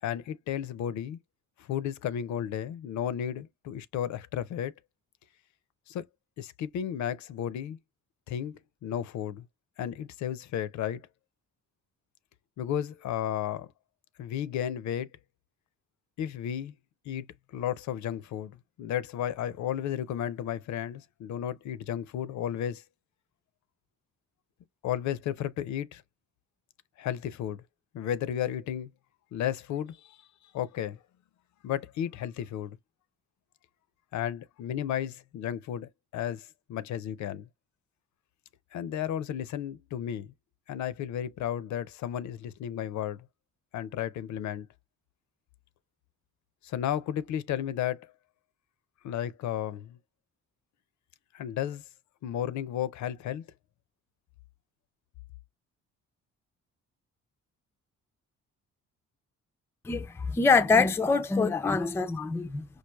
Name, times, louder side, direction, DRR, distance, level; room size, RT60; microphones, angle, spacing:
voice 1, 0.0-1.2 1.6-4.7 5.9-6.0 6.4-7.8 8.3-9.5 9.8-11.0 12.6-13.7 14.2-15.1 16.2-16.7 17.1-17.3 17.5-18.5 18.8-22.8 24.8-26.0 27.0-27.6 27.9-28.9 29.3-30.2 30.5-31.0 31.6-32.8 34.1-37.5 38.7-40.3 40.7-43.2 43.7-44.7 46.6-48.1 49.0-50.0 51.3-51.8 52.2-53.4, left 10 dB, 70° left, 0.5 m, -33 dB
voice 2, 59.8-62.7, left 4 dB, 10° left, 0.3 m, -25 dB
4.6 x 2.4 x 2.2 m
cardioid pair, 90°, 30 cm